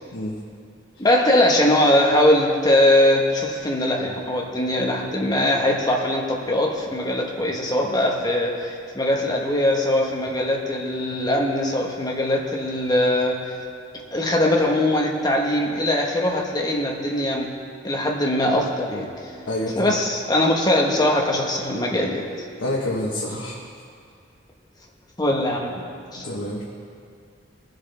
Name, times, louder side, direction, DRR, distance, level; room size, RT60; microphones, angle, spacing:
voice 1, 1.0-13.5 14.1-17.5 17.8-19.1 19.7-22.3 25.2-25.8 26.1-26.3, left 1 dB, 20° left, -1 dB, 1.2 m, -21 dB
voice 2, 19.5-19.9 22.6-23.6 26.2-26.6, left 1 dB, 85° left, -3 dB, 1.2 m, -27 dB
19.0 x 7.8 x 3.4 m, 2.3 s
head